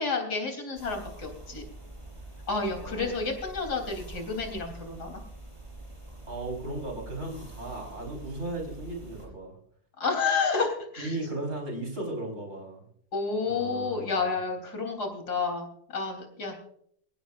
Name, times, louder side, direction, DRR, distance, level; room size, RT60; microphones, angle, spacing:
voice 1, 0.0-1.6 2.5-5.2 10.0-11.2 13.1-16.5, left 4 dB, 70° left, 3 dB, 4.1 m, -30 dB
sound 1, 0.8-9.3, right 2 dB, 15° right, 5.3 m, -45 dB
voice 2, 2.6-3.2 6.3-9.5 11.0-12.9 13.4-14.4, right 2 dB, 45° right, 0 dB, 5.1 m, -36 dB
23.5 x 17.0 x 2.5 m, 0.65 s
omnidirectional pair, 1.8 m